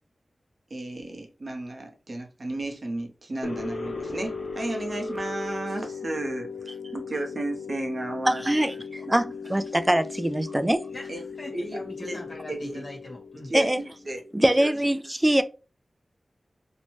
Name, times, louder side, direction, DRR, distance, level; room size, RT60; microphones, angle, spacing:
voice 1, 0.7-8.4 9.1-9.2 11.1-11.2 11.5-11.7 12.0-12.2 12.5-12.8 13.4-14.7, right 2 dB, 55° right, 0.7 m, -33 dB
sound 1, 3.4-14.3, left 4 dB, 85° left, 0.4 m, -37 dB
voice 2, 8.3-10.8 13.5-13.8 14.3-15.4, right 1 dB, 15° right, 0.3 m, -23 dB
voice 3, 10.9-13.5, left 1 dB, 45° left, 1.3 m, -40 dB
2.6 x 2.1 x 3.1 m
cardioid pair, 55°, 0 cm